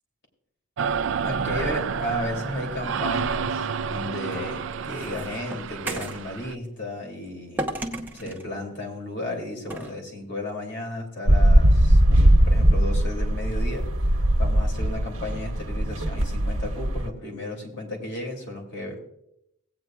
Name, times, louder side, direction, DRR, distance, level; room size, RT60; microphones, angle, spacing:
sound 1, 0.8-6.5, right 6 dB, 60° right, 0.4 m, -29 dB
voice 1, 1.2-7.7 8.1-13.9 14.4-19.0, left 1 dB, 55° left, 1 dB, 2.6 m, -34 dB
sound 2, 4.3-6.3 7.6-8.5 9.7-10.0, right 1 dB, 10° right, 0.8 m, -33 dB
sound 3, 11.3-17.1, right 1 dB, 80° right, 1.1 m, -20 dB
17.5 x 8.9 x 2.3 m, 0.77 s
head